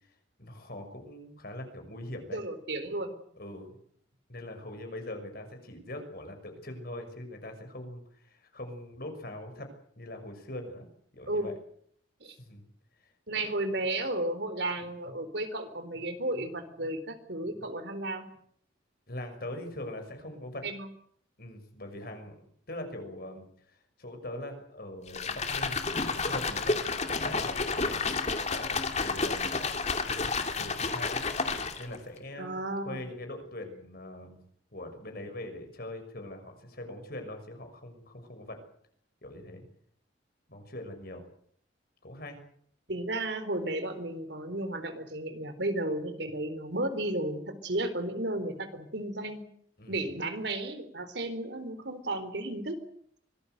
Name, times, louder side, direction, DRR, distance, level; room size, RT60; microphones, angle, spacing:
voice 1, 0.4-2.4 3.4-3.8 4.3-9.7 10.0-10.9 11.1-11.5 12.3-12.7 13.3-13.4 19.1-20.7 21.4-22.3 22.7-28.0 28.5-29.6 30.1-31.2 31.8-32.6 32.8-34.4 34.7-38.6 39.2-39.6 40.5-41.2 42.0-42.4 49.8-50.1, left 1 dB, 55° left, 6 dB, 6.1 m, -42 dB
voice 2, 2.3-3.1 11.3-11.5 12.2-12.4 13.3-18.3 20.6-20.9 32.4-33.0 42.9-49.4 49.9-52.8, right 1 dB, 65° right, 10 dB, 4.0 m, -33 dB
sound 1, 25.1-32.0, left 4 dB, 35° left, 2.6 m, -30 dB
25.0 x 19.5 x 8.1 m, 0.65 s
head